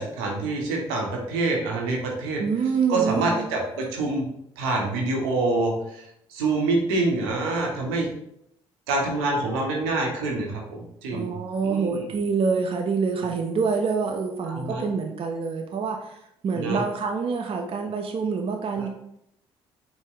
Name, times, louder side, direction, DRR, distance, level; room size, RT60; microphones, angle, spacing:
voice 1, 0.0-2.4 2.9-4.3 4.6-8.1 8.9-10.6 11.0-11.3 11.6-12.0 14.4-14.9 16.5-16.8 18.8-18.9, right 2 dB, 85° right, -1 dB, 0.9 m, -26 dB
voice 2, 2.4-3.4 11.1-18.9, right 5 dB, 45° right, 3 dB, 0.5 m, -26 dB
4.4 x 2.1 x 3.7 m, 0.76 s
hypercardioid pair, 50°, 13 cm